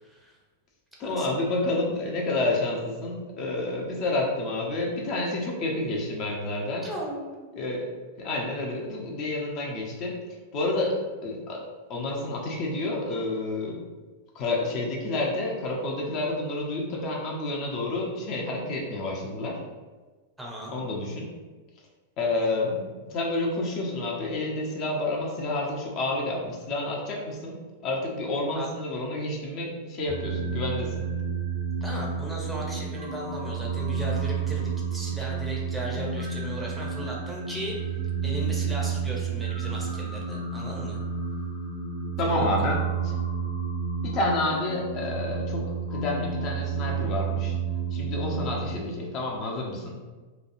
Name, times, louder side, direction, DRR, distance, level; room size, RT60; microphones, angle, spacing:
voice 1, 0.0-0.4 1.0-1.3 6.8-7.4 20.4-20.7 28.5-28.7 31.8-37.8 38.2-41.0 42.3-42.4, right 1 dB, 5° right, -3 dB, 0.7 m, -37 dB
voice 2, 1.0-6.9 7.5-7.9 8.2-10.2 10.5-11.6 11.9-13.8 14.3-19.6 20.7-21.3 22.2-27.6 27.8-31.0 42.2-43.2 44.0-45.6 45.9-47.6 47.9-50.0, left 2 dB, 40° left, -2 dB, 0.6 m, -29 dB
sound 1, 30.1-48.7, right 6 dB, 60° right, 0.9 m, -30 dB
3.0 x 2.3 x 2.6 m, 1.3 s
figure-of-eight pair, 95°, 0 cm